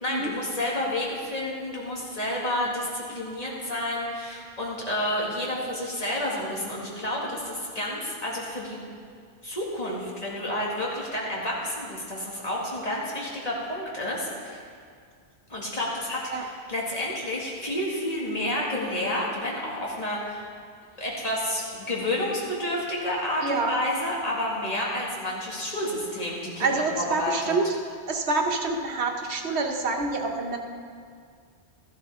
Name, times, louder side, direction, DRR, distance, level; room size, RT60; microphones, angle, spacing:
voice 1, 0.0-8.8 9.4-14.6 15.5-20.5 21.0-27.6, left 1 dB, 35° left, -4 dB, 2.2 m, -30 dB
voice 2, 23.4-23.8 26.6-27.7 28.1-30.6, right 3 dB, 85° right, 3 dB, 1.3 m, -27 dB
13.5 x 12.0 x 3.7 m, 2.1 s
omnidirectional pair, 1.1 m